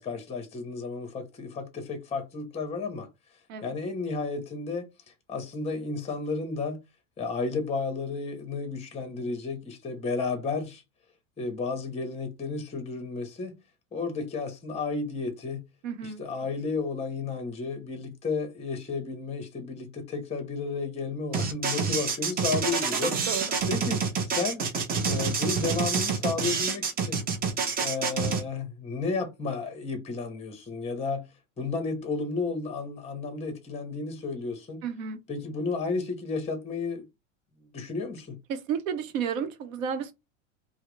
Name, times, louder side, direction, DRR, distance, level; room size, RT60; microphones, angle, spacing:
voice 1, 0.0-3.1 3.6-4.9 5.3-6.8 7.2-10.8 11.4-13.6 13.9-15.7 16.0-23.1 23.7-24.6 25.0-27.2 27.8-31.3 31.6-34.8 35.3-37.1 37.6-38.4, left 4 dB, 15° left, 0.7 m, -32 dB
voice 2, 15.8-16.2 23.0-23.6 34.8-35.2 38.5-40.1, right 6 dB, 75° right, 0.8 m, -32 dB
sound 1, 21.3-28.4, right 5 dB, 25° right, 0.5 m, -27 dB
2.3 x 2.0 x 3.0 m
supercardioid pair, 110°, 40 cm